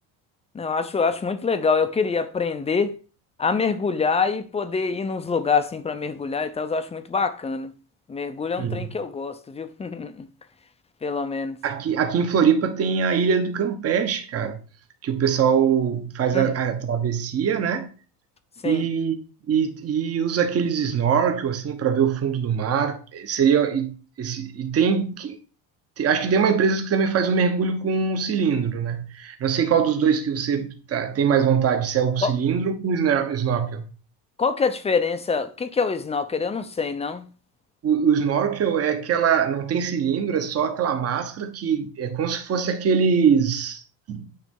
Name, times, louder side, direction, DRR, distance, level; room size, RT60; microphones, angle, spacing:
voice 1, 0.5-2.9 3.4-7.7 8.1-10.3 11.0-11.6 16.3-16.6 18.6-18.9 32.2-32.3 34.4-37.3, left 5 dB, 15° left, 0.5 m, -25 dB
voice 2, 8.6-8.9 11.6-14.6 15.0-17.9 18.6-19.2 19.5-25.4 26.0-33.9 37.8-43.8 44.1-44.3, right 7 dB, 35° right, 1.1 m, -22 dB
9.2 x 3.3 x 5.3 m
cardioid pair, 155°, 41 cm